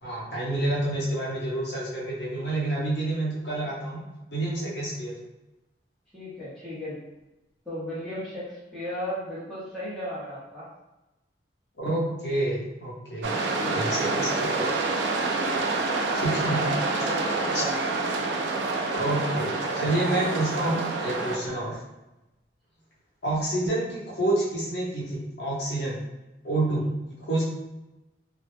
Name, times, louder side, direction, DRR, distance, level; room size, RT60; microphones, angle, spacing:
voice 1, 0.0-4.0 4.3-5.1 11.8-14.6 16.1-16.6 17.5-17.6 18.9-21.8 23.2-26.0 26.4-26.9 27.2-27.4, right 2 dB, 65° left, -6 dB, 0.7 m, -28 dB
voice 2, 6.1-7.0 7.6-10.7 13.3-14.3 16.4-17.8 21.3-21.6 26.6-26.8, left 1 dB, ahead, -11 dB, 0.7 m, -36 dB
sound 1, 13.2-21.4, right 3 dB, 75° right, 0.3 m, -27 dB
2.0 x 2.0 x 3.0 m, 1.0 s
head